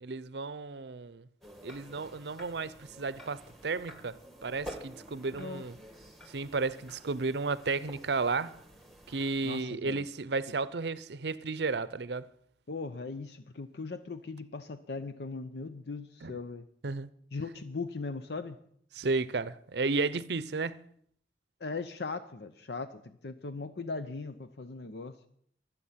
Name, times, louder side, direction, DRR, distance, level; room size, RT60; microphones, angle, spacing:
voice 1, 0.0-1.2 1.6-4.2 4.4-5.7 6.3-8.6 9.1-12.3 16.2-16.4 16.8-17.1 18.9-20.8, right 4 dB, 65° right, 0.6 m, -33 dB
sound 1, 1.4-9.6, equal, ahead, 1.7 m, -50 dB
voice 2, 9.4-10.1 12.7-16.7 17.3-18.6 21.6-25.2, left 4 dB, 65° left, 0.7 m, -39 dB
24.0 x 8.2 x 5.7 m
head